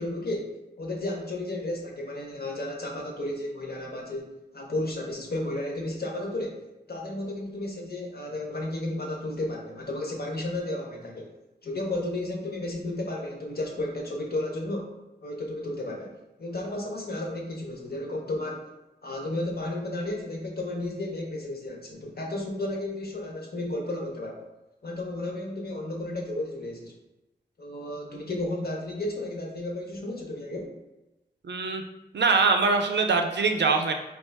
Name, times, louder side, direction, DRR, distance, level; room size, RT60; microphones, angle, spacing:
voice 1, 0.0-6.6 6.9-11.3 11.6-14.9 15.2-16.1 16.4-18.7 19.0-24.5 24.8-26.9 27.6-30.7, left 1 dB, 65° left, 0 dB, 0.9 m, -33 dB
voice 2, 31.4-31.8 32.1-33.9, right 4 dB, 80° right, 4 dB, 0.5 m, -23 dB
4.6 x 2.4 x 3.3 m, 0.99 s
wide cardioid pair, 105°, 18 cm